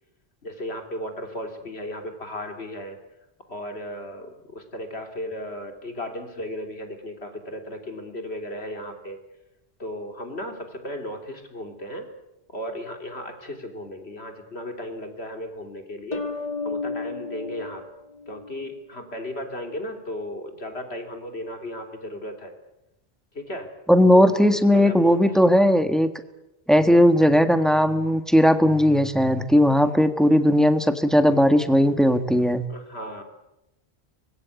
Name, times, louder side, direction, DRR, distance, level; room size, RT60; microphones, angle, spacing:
voice 1, 0.4-3.0 3.5-9.2 9.8-12.1 12.5-16.3 16.6-17.8 18.3-22.5 23.3-23.7 24.1-25.4 32.7-33.2, left 1 dB, 80° left, 5 dB, 3.5 m, -35 dB
sound 1, 16.1-18.8, left 3 dB, 40° left, 1.8 m, -33 dB
voice 2, 23.9-26.1 26.7-32.6, equal, ahead, 9 dB, 1.5 m, -18 dB
24.5 x 20.5 x 8.3 m, 0.90 s
omnidirectional pair, 1.1 m